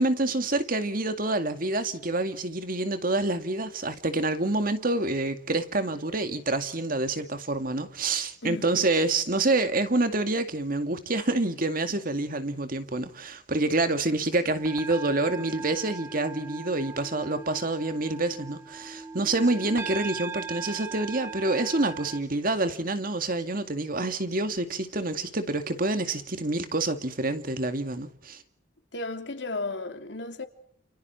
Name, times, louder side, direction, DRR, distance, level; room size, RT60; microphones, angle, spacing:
voice 1, 0.0-28.4, right 2 dB, 50° right, 2.2 m, -27 dB
voice 2, 8.4-8.9 28.9-30.5, left 2 dB, 65° left, 3.0 m, -34 dB
sound 1, 14.4-22.2, right 4 dB, 15° right, 1.2 m, -39 dB
29.5 x 29.5 x 4.5 m
head